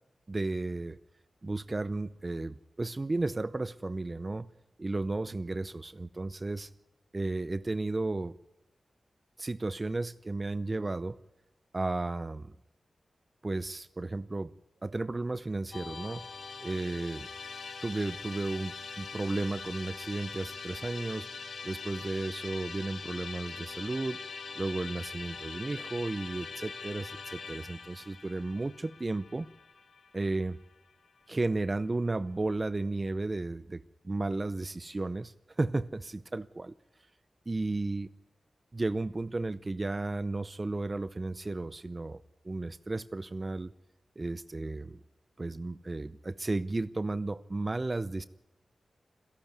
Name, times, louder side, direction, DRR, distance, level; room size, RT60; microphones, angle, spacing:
voice 1, 0.3-1.0 1.4-4.5 4.8-6.7 7.1-8.3 9.4-11.2 11.7-12.5 13.4-14.5 14.8-16.2 16.6-17.3 17.8-21.3 21.6-24.2 24.5-29.5 30.1-30.6 31.3-36.7 37.5-38.1 38.7-43.7 44.2-45.0 45.4-48.3, right 2 dB, 35° right, 16 dB, 0.7 m, -34 dB
Musical instrument, 15.7-30.9, left 5 dB, 80° left, 2.8 m, -43 dB
26.5 x 12.0 x 9.5 m, 0.94 s
cardioid pair, 55°, 0 cm